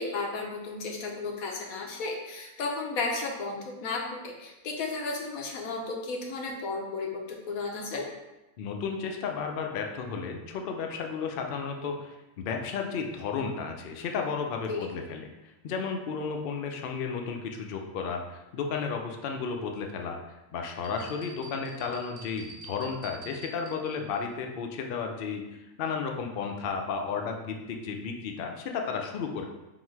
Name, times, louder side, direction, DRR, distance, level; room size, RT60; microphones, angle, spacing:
voice 1, 0.0-8.1 14.7-14.9, left 3 dB, 90° left, 0 dB, 1.2 m, -34 dB
voice 2, 8.6-15.3 15.6-20.2 20.5-29.5, left 5 dB, 65° left, 3 dB, 0.6 m, -33 dB
sound 1, 20.8-24.2, right 4 dB, 45° right, 0.8 m, -48 dB
3.8 x 2.6 x 4.5 m, 1.0 s
omnidirectional pair, 1.4 m